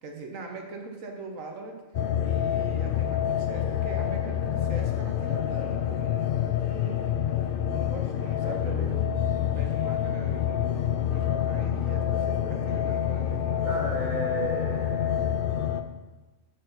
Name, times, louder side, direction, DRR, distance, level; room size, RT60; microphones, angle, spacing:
voice 1, 0.0-1.8 2.2-7.1 7.7-9.0 9.4-12.1 12.5-13.7, right 3 dB, 70° right, 3 dB, 1.6 m, -42 dB
sound 1, 1.9-15.8, left 10 dB, 60° left, 0.6 m, -27 dB
voice 2, 8.4-10.3 12.1-13.0 13.6-15.4, right 1 dB, 40° right, -1 dB, 1.0 m, -37 dB
7.6 x 5.7 x 5.6 m, 1.2 s
omnidirectional pair, 1.4 m